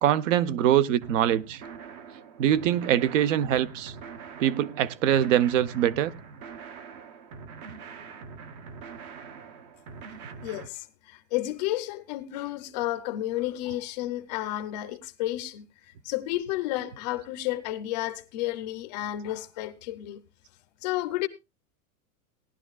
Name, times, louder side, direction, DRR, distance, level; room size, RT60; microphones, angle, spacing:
voice 1, 0.0-1.6 2.4-3.9 4.4-6.1, right 11 dB, 60° right, 0.9 m, -23 dB
sound 1, 1.0-10.7, right 5 dB, 30° right, 0.7 m, -44 dB
voice 2, 10.4-15.7 16.0-20.2 20.8-21.3, left 15 dB, 30° left, 0.6 m, -31 dB
18.0 x 11.5 x 2.3 m
supercardioid pair, 175°, 43 cm